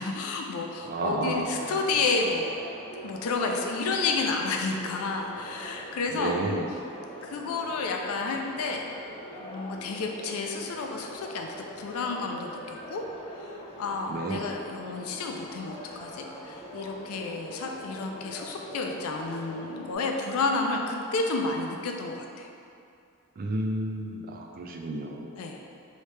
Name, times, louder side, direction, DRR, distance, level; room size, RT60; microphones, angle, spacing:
voice 1, 0.0-2.6 3.0-6.4 7.2-8.8 9.4-13.0 13.4-22.5 25.4-25.7, left 3 dB, 75° left, 2 dB, 0.4 m, -31 dB
voice 2, 0.8-1.8 6.1-6.7 14.1-14.4 23.4-25.3, right 2 dB, 40° right, 2 dB, 0.3 m, -31 dB
sound 1, 0.9-19.9, equal, 25° left, 0.6 m, -43 dB
3.2 x 2.7 x 3.2 m, 2.5 s
head